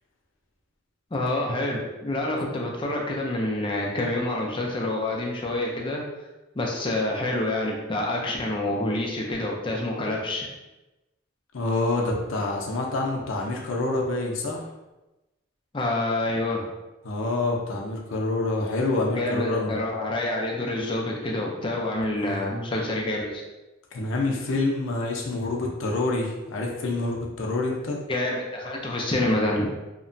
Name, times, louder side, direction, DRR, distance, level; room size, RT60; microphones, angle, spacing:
voice 1, 1.1-6.0 6.5-10.5 15.7-16.7 19.2-23.4 28.1-29.7, left 1 dB, 25° left, -1 dB, 0.4 m, -27 dB
voice 2, 11.5-14.6 17.0-19.8 22.1-22.5 23.9-28.0, left 2 dB, 75° left, 0 dB, 0.5 m, -27 dB
2.9 x 2.1 x 2.6 m, 1.0 s
head